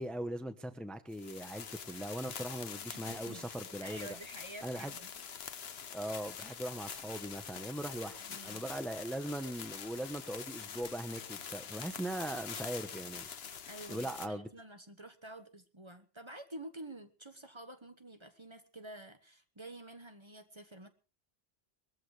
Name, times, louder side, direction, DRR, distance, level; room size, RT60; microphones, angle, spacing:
voice 1, 0.0-4.2 4.6-4.9 5.9-13.3 13.9-14.5, right 1 dB, ahead, 9 dB, 1.0 m, -40 dB
sound 1, 1.1-14.3, left 7 dB, 75° left, 1.1 m, -45 dB
voice 2, 2.9-3.5 3.8-5.1 8.2-8.6 13.7-20.9, right 1 dB, 25° right, 8 dB, 1.3 m, -49 dB
21.5 x 14.5 x 3.3 m, 0.34 s
omnidirectional pair, 1.0 m